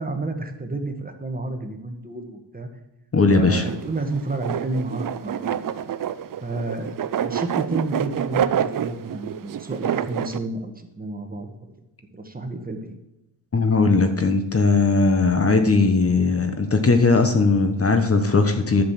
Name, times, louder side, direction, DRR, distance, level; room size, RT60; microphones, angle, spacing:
voice 1, 0.0-2.7 3.3-5.6 6.4-6.9 7.2-11.5 12.1-13.0, right 2 dB, 20° right, 5 dB, 1.5 m, -30 dB
voice 2, 3.1-3.6 13.5-18.8, left 3 dB, 30° left, 7 dB, 1.2 m, -18 dB
sound 1, 3.5-10.4, right 9 dB, 45° right, 0.6 m, -27 dB
10.5 x 6.7 x 7.5 m, 0.93 s
cardioid pair, 95°, 45 cm